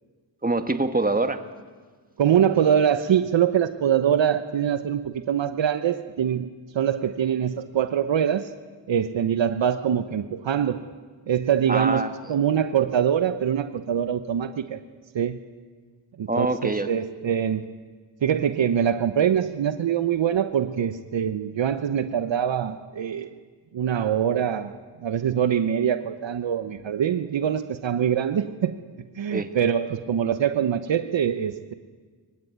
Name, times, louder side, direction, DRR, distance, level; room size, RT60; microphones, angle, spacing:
voice 1, 0.4-1.4 11.7-12.1 16.3-16.9 29.3-29.5, right 2 dB, 20° right, 8 dB, 2.0 m, -24 dB
voice 2, 2.2-8.5 8.9-10.8 11.3-14.8 15.1-15.4 16.2-17.7 18.2-23.3 23.7-24.7 25.0-28.7 29.2-31.7, right 9 dB, 70° right, 11 dB, 1.0 m, -24 dB
25.0 x 16.0 x 9.4 m, 1.5 s
cardioid pair, 45°, 46 cm